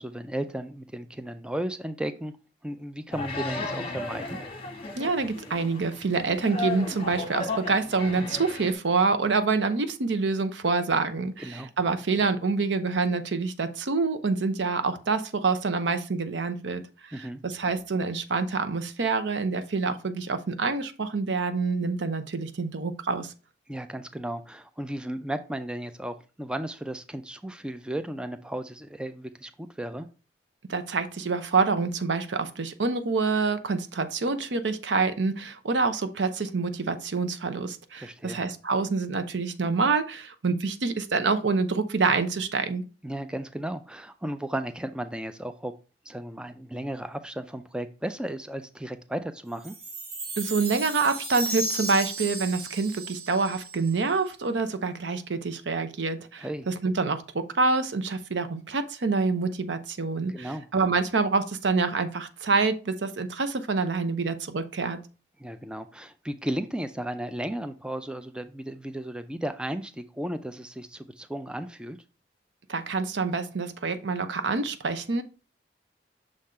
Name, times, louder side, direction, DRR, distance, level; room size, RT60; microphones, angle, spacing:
voice 1, 0.0-2.3 2.6-4.4 11.4-11.7 17.1-17.4 23.7-30.1 38.0-38.4 43.0-45.7 46.1-49.7 56.4-56.7 60.3-60.7 65.4-72.0, right 1 dB, 5° right, 9 dB, 0.4 m, -34 dB
sound 1, 3.1-8.7, left 3 dB, 30° left, 1.2 m, -35 dB
voice 2, 5.0-16.8 17.2-23.3 30.7-42.8 50.4-65.0 72.7-75.2, right 4 dB, 80° right, 11 dB, 0.7 m, -27 dB
Chime, 49.6-54.1, right 2 dB, 55° right, 1.9 m, -35 dB
6.3 x 3.8 x 4.3 m, 0.33 s
head